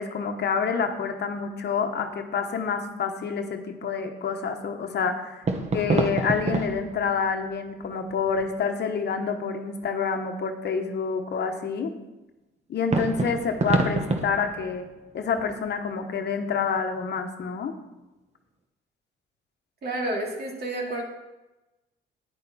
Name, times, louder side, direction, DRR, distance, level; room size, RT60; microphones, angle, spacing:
voice 1, 0.0-5.4 5.7-11.9 12.7-14.9 15.1-17.7, left 5 dB, 55° left, 5 dB, 1.2 m, -28 dB
sound 1, 5.4-8.9 12.9-16.2, right 3 dB, 35° right, 1.2 m, -29 dB
voice 2, 19.8-21.0, right 1 dB, 50° right, 0 dB, 2.7 m, -30 dB
9.9 x 9.6 x 4.2 m, 1.0 s
cardioid pair, 90°, 20 cm